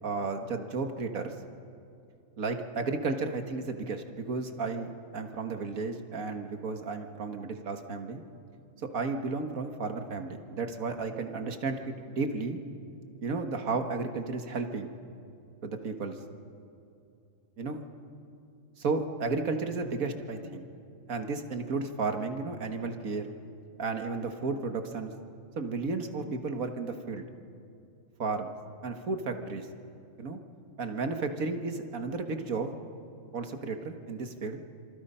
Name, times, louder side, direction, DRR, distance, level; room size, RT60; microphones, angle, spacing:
voice 1, 0.0-1.3 2.4-8.2 8.9-12.6 13.2-14.9 15.6-16.2 17.6-17.8 18.8-20.7 21.1-23.3 23.8-25.1 25.6-27.2 28.2-28.5 28.8-29.7 30.2-30.4 30.8-32.7 33.3-34.6, right 4 dB, 80° right, 6 dB, 2.0 m, -33 dB
27.0 x 24.5 x 5.6 m, 2.7 s
omnidirectional pair, 1.4 m